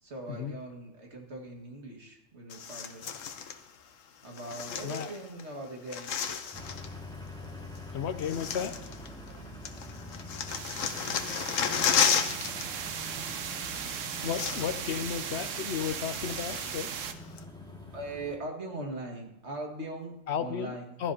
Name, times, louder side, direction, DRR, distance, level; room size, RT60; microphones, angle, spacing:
voice 1, 0.0-3.2 4.2-6.2 9.3-9.4 15.9-16.0 17.9-21.1, right 2 dB, 60° right, 1 dB, 2.2 m, -41 dB
sound 1, 2.5-3.6 4.4-5.4 5.7-6.9 7.8-7.9 8.2-9.4 9.7-12.7 12.9-13.1 13.9-14.0 14.2-14.9 15.3-15.4 15.9-16.9 17.4-17.5, left 7 dB, 85° left, 1.2 m, -32 dB
sound 2, 6.5-18.4, left 1 dB, 5° left, 2.1 m, -45 dB
voice 2, 7.9-8.9 14.2-16.9 20.3-21.1, left 8 dB, 65° left, 11 dB, 0.8 m, -34 dB
sound 3, 10.5-17.1, right 7 dB, 75° right, 1.1 m, -37 dB
15.5 x 12.0 x 2.8 m, 0.95 s
omnidirectional pair, 1.3 m